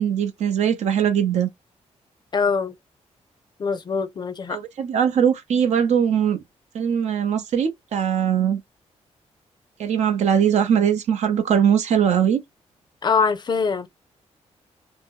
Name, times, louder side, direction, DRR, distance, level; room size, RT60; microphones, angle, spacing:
voice 1, 0.0-1.5 4.5-6.4 6.7-8.6 9.8-12.4, right 8 dB, 75° right, 0.7 m, -21 dB
voice 2, 2.3-2.7 3.6-4.6 13.0-13.9, left 5 dB, 40° left, 0.5 m, -23 dB
2.7 x 2.0 x 3.5 m
cardioid pair, 120°, 12 cm